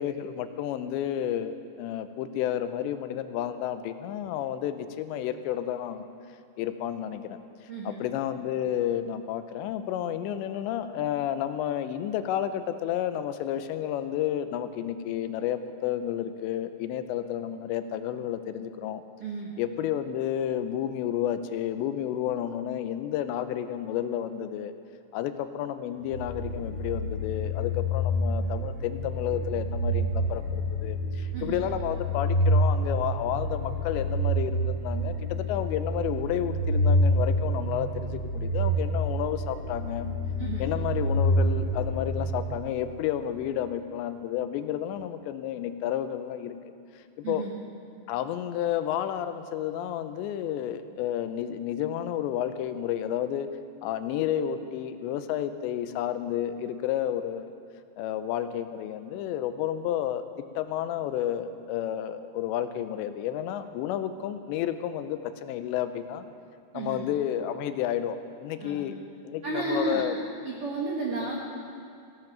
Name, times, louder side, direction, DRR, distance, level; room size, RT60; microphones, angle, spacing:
voice 1, 0.0-6.1 6.6-7.4 7.8-19.0 19.6-24.7 25.1-40.1 40.6-46.6 47.2-47.4 48.1-53.5 53.8-57.5 58.0-60.2 60.6-66.3 66.7-69.0 69.3-70.1, left 10 dB, 90° left, 11 dB, 2.9 m, -31 dB
voice 2, 7.7-8.0 19.2-19.5 31.3-31.6 40.4-40.7 47.2-47.5 66.7-67.0 68.6-68.9 69.4-70.0 70.4-71.4, right 3 dB, 75° right, -3 dB, 1.3 m, -32 dB
sound 1, 26.0-42.9, equal, 40° right, 3.8 m, -28 dB
16.5 x 11.0 x 5.9 m, 2.4 s
omnidirectional pair, 5.0 m